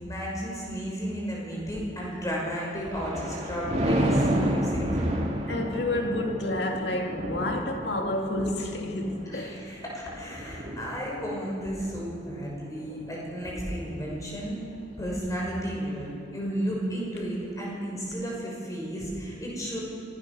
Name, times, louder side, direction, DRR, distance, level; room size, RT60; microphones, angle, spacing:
voice 1, 0.0-5.0 9.3-14.6 15.0-19.8, equal, 20° left, 6.2 m, -33 dB
Thunder, 2.6-14.1 14.5-14.9, right 1 dB, 40° right, 2.7 m, -31 dB
voice 2, 5.5-9.6 12.9-13.0, left 1 dB, 65° left, 2.4 m, -29 dB
25.0 x 17.0 x 6.4 m
head